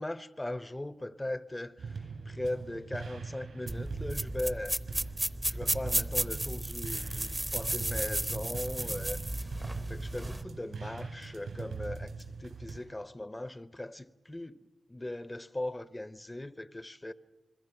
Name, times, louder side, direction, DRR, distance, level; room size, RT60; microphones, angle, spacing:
voice 1, 0.0-4.8 5.4-9.5 9.9-12.1 12.4-14.6 14.9-17.1, left 1 dB, 15° left, 0.8 m, -39 dB
sound 1, 1.8-12.8, right 4 dB, 85° right, 4.4 m, -41 dB
sound 2, 3.7-10.4, right 1 dB, 10° right, 0.8 m, -34 dB
29.0 x 21.5 x 6.0 m
wide cardioid pair, 85°, 0 cm